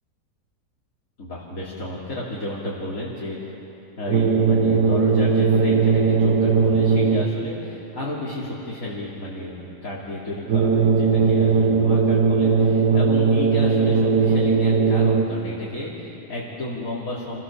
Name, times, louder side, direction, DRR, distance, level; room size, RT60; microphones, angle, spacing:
voice 1, 1.2-3.4 4.0-17.4, left 1 dB, 55° left, -8 dB, 3.5 m, -32 dB
sound 1, 4.1-7.5 10.5-15.5, right 5 dB, 80° right, 1.6 m, -19 dB
28.0 x 19.0 x 7.3 m, 3.0 s
omnidirectional pair, 1.7 m